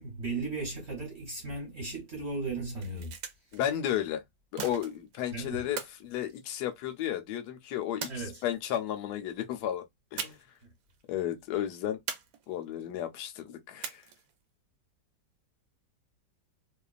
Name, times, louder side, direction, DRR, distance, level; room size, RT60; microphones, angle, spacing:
voice 1, 0.0-3.1 5.3-5.6 8.1-8.4 10.6-10.7, right 3 dB, 45° right, 1.1 m, -36 dB
sound 1, 2.7-3.6 4.6-5.2 5.8-7.0 8.0-8.8 10.2-10.6 10.9-11.0 12.1-12.8 13.8-14.4, right 7 dB, 70° right, 0.9 m, -40 dB
voice 2, 3.5-4.2 4.5-8.1 8.4-9.8 10.1-10.4 11.1-12.0 12.5-14.0, left 11 dB, 75° left, 1.1 m, -33 dB
2.9 x 2.2 x 2.3 m
omnidirectional pair, 1.9 m